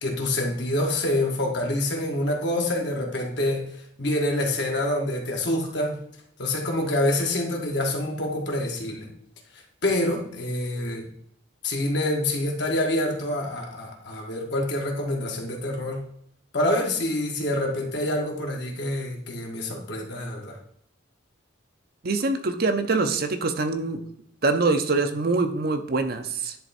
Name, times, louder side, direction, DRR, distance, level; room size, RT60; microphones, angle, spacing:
voice 1, 0.0-6.0 6.4-9.1 9.8-11.0 11.6-16.0 16.5-20.6, left 1 dB, 65° left, 0 dB, 1.6 m, -26 dB
voice 2, 22.0-24.0 24.4-26.6, right 3 dB, 55° right, 7 dB, 0.7 m, -24 dB
10.5 x 3.5 x 4.3 m, 0.68 s
head